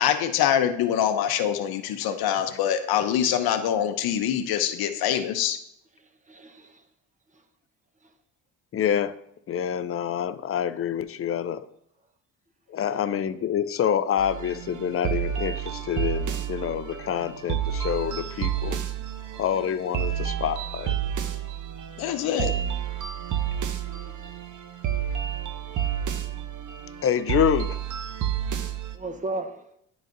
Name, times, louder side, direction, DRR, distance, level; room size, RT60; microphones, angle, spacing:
voice 1, 0.0-5.6 22.0-22.5, left 9 dB, 75° left, 8 dB, 0.7 m, -24 dB
voice 2, 6.3-6.8 19.3-19.4 22.2-22.8 23.8-24.3 28.9-29.6, right 2 dB, 20° right, 6 dB, 1.0 m, -36 dB
voice 3, 8.7-9.1 9.5-11.6 12.7-18.8 19.4-20.9 27.0-27.8, left 9 dB, 40° left, 14 dB, 0.5 m, -27 dB
sound 1, 14.2-29.0, right 9 dB, 55° right, 0.8 m, -30 dB
10.5 x 4.0 x 2.6 m, 0.73 s
supercardioid pair, 75°, 37 cm